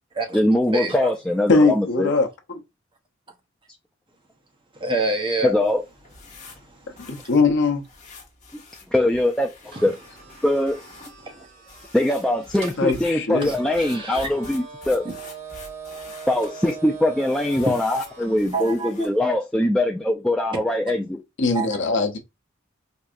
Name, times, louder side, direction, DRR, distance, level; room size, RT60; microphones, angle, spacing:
voice 1, 0.3-2.1 5.4-5.8 8.5-8.6 8.9-10.0 10.4-10.8 11.9-15.1 16.3-21.2, left 1 dB, 5° left, 0.3 m, -22 dB
voice 2, 1.5-2.3 7.0-7.8 12.8-13.5 21.4-22.2, left 3 dB, 60° left, 0.8 m, -20 dB
voice 3, 4.7-5.6 6.4-7.3 11.2-11.5 13.4-14.3 15.0-15.1 17.5-17.7 18.5-18.9 21.5-21.8, right 2 dB, 25° right, 0.8 m, -28 dB
sound 1, 5.5-19.3, left 3 dB, 35° left, 1.1 m, -46 dB
sound 2, 9.7-18.5, right 5 dB, 70° right, 1.2 m, -41 dB
4.5 x 2.7 x 2.4 m
head